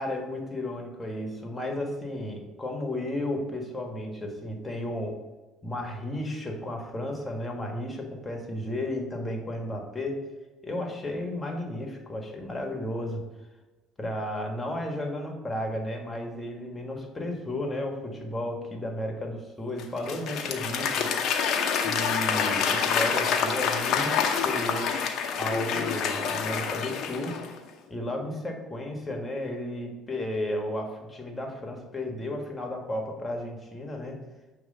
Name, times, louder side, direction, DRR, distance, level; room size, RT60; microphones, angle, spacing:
voice 1, 0.0-5.2 5.6-10.2 10.6-13.2 14.0-21.1 21.8-25.0 25.3-27.4 27.9-34.2, left 1 dB, 20° left, 2 dB, 1.4 m, -33 dB
Applause / Crowd, 19.8-27.6, left 6 dB, 65° left, 0.8 m, -27 dB
6.9 x 3.1 x 5.4 m, 1.2 s
supercardioid pair, 80°, 0 cm